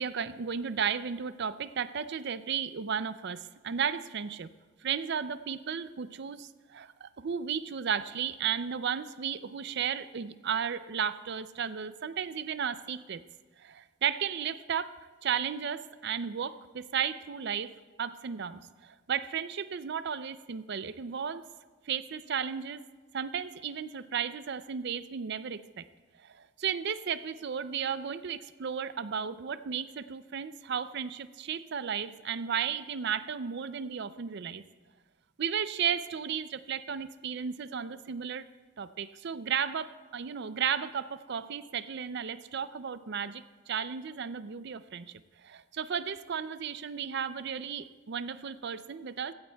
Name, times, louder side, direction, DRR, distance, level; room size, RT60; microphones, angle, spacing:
voice 1, 0.0-4.5 4.8-13.2 13.6-15.0 15.2-17.7 18.0-21.4 21.9-22.8 23.1-25.9 26.2-34.6 35.4-38.5 38.8-49.3, right 7 dB, 55° right, 13 dB, 0.4 m, -34 dB
16.0 x 16.0 x 2.3 m, 1.3 s
head